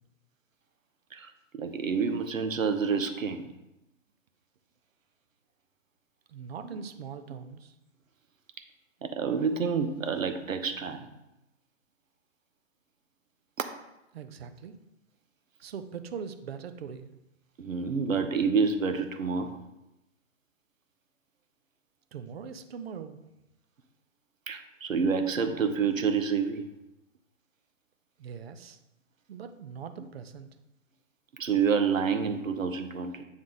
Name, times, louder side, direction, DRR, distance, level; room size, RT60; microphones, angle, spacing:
voice 1, 1.1-3.4 9.0-11.1 13.6-13.7 17.6-19.6 24.5-26.7 31.4-33.2, right 5 dB, 85° right, 8 dB, 0.9 m, -28 dB
voice 2, 6.3-7.7 14.1-14.8 15.6-17.1 22.1-23.2 28.2-28.8 29.3-30.5, right 6 dB, 50° right, 9 dB, 0.7 m, -41 dB
8.0 x 3.7 x 3.7 m, 0.92 s
figure-of-eight pair, 135°, 39 cm